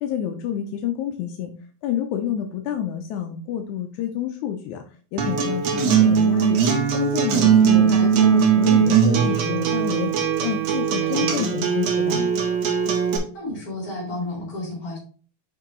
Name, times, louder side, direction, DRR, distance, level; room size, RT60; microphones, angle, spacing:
voice 1, 0.0-1.5 1.8-4.8 5.1-6.6 6.9-10.1 10.4-12.2, left 9 dB, 85° left, 5 dB, 1.7 m, -28 dB
Acoustic guitar, 5.2-13.2, right 7 dB, 65° right, 1.8 m, -19 dB
voice 2, 7.6-8.1 11.0-11.4 13.3-15.0, left 1 dB, 30° left, -1 dB, 2.5 m, -32 dB
6.3 x 4.7 x 3.7 m, 0.41 s
omnidirectional pair, 4.2 m